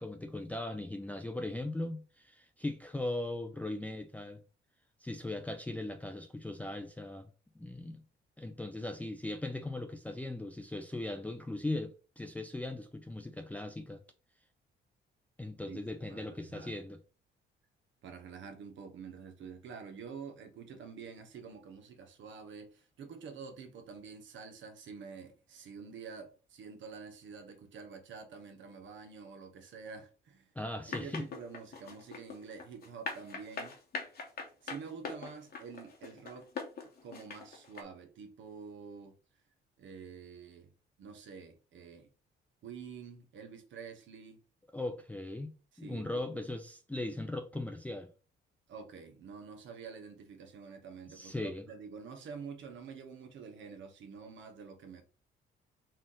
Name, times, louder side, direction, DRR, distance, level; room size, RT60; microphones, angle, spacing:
voice 1, 0.0-4.4 5.0-7.3 7.6-8.0 8.4-14.0 15.4-17.0 30.6-31.2 44.7-48.1 51.1-51.7, left 2 dB, 5° left, 0.4 m, -39 dB
voice 2, 15.7-16.8 18.0-30.5 30.9-33.8 34.6-36.5 37.0-39.1 39.8-40.7 41.0-42.1 42.6-44.4 45.7-46.4 48.7-55.0, right 5 dB, 70° right, 0.9 m, -48 dB
sound 1, 30.9-37.8, left 4 dB, 50° left, 1.1 m, -41 dB
4.3 x 2.4 x 3.7 m
cardioid pair, 90°, 20 cm